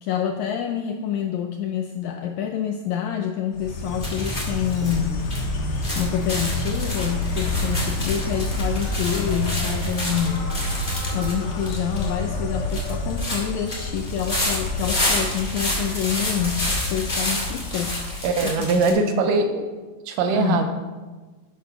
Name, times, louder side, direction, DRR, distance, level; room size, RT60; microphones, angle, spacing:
voice 1, 0.0-5.4 5.9-10.4 11.1-17.9 18.4-19.3 20.3-20.6, left 9 dB, 80° left, 5 dB, 1.7 m, -27 dB
Insect, 3.5-18.6, left 1 dB, 60° left, 2.3 m, -29 dB
sound 1, 4.0-18.9, left 1 dB, 15° left, 1.9 m, -30 dB
voice 2, 18.2-19.6 20.1-20.7, right 4 dB, 80° right, 6 dB, 2.5 m, -21 dB
9.1 x 7.5 x 6.0 m, 1.3 s
omnidirectional pair, 3.9 m